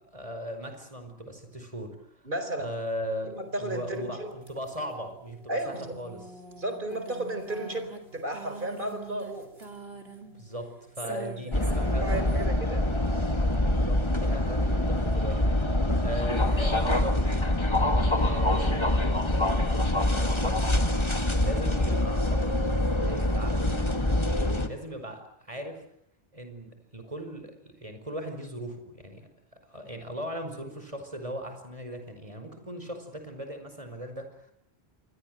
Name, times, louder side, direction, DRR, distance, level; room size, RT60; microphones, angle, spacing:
voice 1, 0.1-2.0 2.6-6.2 10.3-12.4 13.7-15.6 16.0-17.4 18.1-20.8 21.4-25.8 26.3-29.3 29.7-34.5, equal, 30° right, 7 dB, 5.3 m, -38 dB
voice 2, 2.2-2.7 3.2-4.3 5.5-5.8 6.6-9.5 11.0-11.3 11.8-12.8, right 1 dB, 50° right, 8 dB, 4.7 m, -34 dB
sound 1, 3.3-12.5, right 3 dB, 65° right, 3.7 m, -45 dB
sound 2, 11.5-24.7, left 1 dB, 25° left, 2.0 m, -25 dB
28.0 x 21.5 x 7.8 m, 0.70 s
omnidirectional pair, 1.1 m